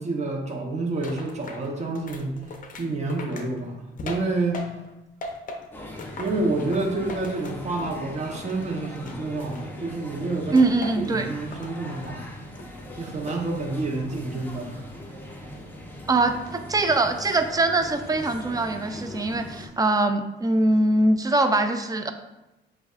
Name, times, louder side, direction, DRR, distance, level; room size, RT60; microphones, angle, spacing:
voice 1, 0.0-2.4 2.8-4.6 6.2-10.6 11.0-12.3 13.0-14.9, right 2 dB, 35° right, 0 dB, 1.0 m, -29 dB
sound 1, 1.0-4.9 5.2-8.0 8.3-10.0 10.6-11.1 11.5-12.2 12.6-13.5 13.8-14.2, left 2 dB, 45° left, 0.6 m, -40 dB
sound 2, 5.7-19.7, left 1 dB, 10° left, 0.8 m, -40 dB
voice 2, 10.5-11.3 16.1-22.1, right 2 dB, 20° right, 7 dB, 0.5 m, -22 dB
7.7 x 2.6 x 2.4 m, 0.96 s
cardioid pair, 90°, 20 cm